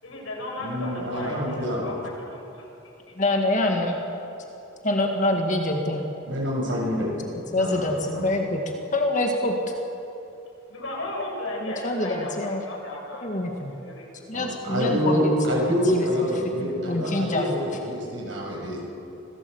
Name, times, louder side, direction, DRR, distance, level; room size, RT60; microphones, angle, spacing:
voice 1, 0.0-1.9 2.3-2.7 3.2-3.3 10.7-13.6 13.8-14.3, left 1 dB, 70° left, -2 dB, 6.7 m, -35 dB
voice 2, 0.6-1.9 6.2-7.2 7.6-7.9 8.1-8.3 14.3-18.8, equal, 60° right, -2 dB, 7.2 m, -26 dB
voice 3, 3.2-4.0 4.8-6.1 7.5-9.6 11.6-12.6 13.2-13.7 14.3-16.1 16.6-17.5, left 1 dB, 35° left, 2 dB, 2.0 m, -26 dB
25.5 x 17.0 x 8.1 m, 2.9 s
head